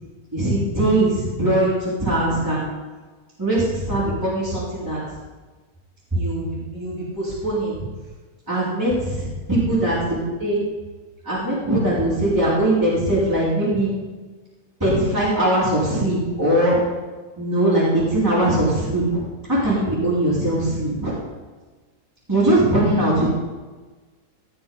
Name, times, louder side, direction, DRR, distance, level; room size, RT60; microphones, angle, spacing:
voice 1, 0.3-2.6 3.4-5.0 6.1-7.9 8.5-10.6 11.3-14.0 14.8-16.8 17.4-19.2 19.5-21.1 22.3-23.3, right 1 dB, 10° right, -10 dB, 3.9 m, -21 dB
16.5 x 6.1 x 5.5 m, 1.3 s
omnidirectional pair, 1.7 m